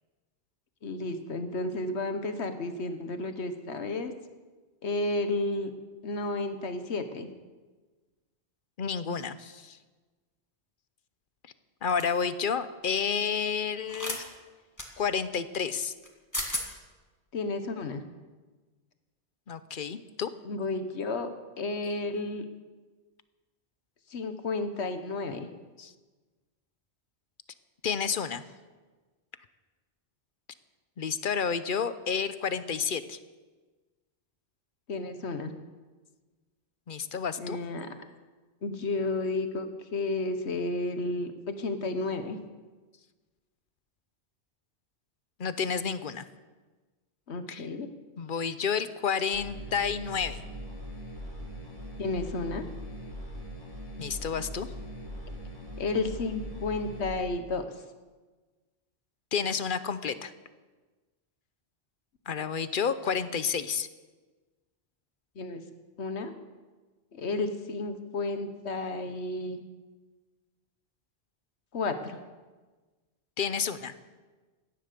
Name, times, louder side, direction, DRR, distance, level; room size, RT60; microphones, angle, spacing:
voice 1, 0.8-4.1 4.8-5.7 6.0-7.3 17.3-18.0 20.4-21.3 21.6-22.4 24.1-25.5 34.9-35.5 37.4-37.9 38.6-42.4 47.3-47.9 52.0-52.7 55.8-57.7 65.4-65.6 66.0-66.3 67.1-69.6 71.7-72.2, left 2 dB, 90° left, 8 dB, 1.4 m, -32 dB
voice 2, 8.8-9.8 11.8-14.2 15.0-15.9 19.5-20.3 21.8-22.0 25.8-25.9 27.8-28.4 31.0-33.2 36.9-37.6 45.4-46.2 47.5-47.7 48.2-50.4 54.0-54.7 59.3-60.3 62.3-63.9 73.4-73.9, left 6 dB, 55° left, 13 dB, 0.9 m, -30 dB
sound 1, 12.0-12.2 13.9-14.2 14.8-14.9 16.0-16.1 16.3-16.7, left 1 dB, 15° left, 2.0 m, -33 dB
sound 2, 49.3-57.1, equal, 35° right, 4.3 m, -41 dB
17.0 x 11.5 x 6.7 m, 1.3 s
omnidirectional pair, 1.1 m